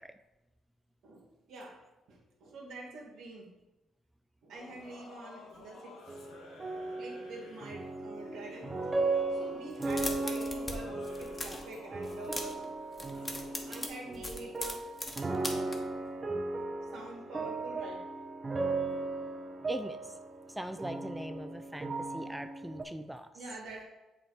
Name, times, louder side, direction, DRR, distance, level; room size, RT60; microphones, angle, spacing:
voice 1, 1.0-1.8 2.1-3.5 4.4-6.0 7.0-8.8 9.3-12.7 13.6-14.8 15.3-15.8 16.9-18.1 23.3-23.8, right 2 dB, 75° right, -2 dB, 1.8 m, -46 dB
Singing / Musical instrument, 4.5-13.9, left 2 dB, 90° left, 1.1 m, -52 dB
sound 1, 6.1-22.8, right 3 dB, 30° right, 0.7 m, -36 dB
sound 2, 9.7-10.8 11.0-11.7 12.0-12.6 12.9-15.8, left 1 dB, 20° left, 1.0 m, -39 dB
voice 2, 19.7-20.1 20.5-23.3, equal, 5° right, 8 dB, 0.3 m, -41 dB
7.8 x 2.9 x 4.6 m, 1.0 s
cardioid pair, 90°, 0 cm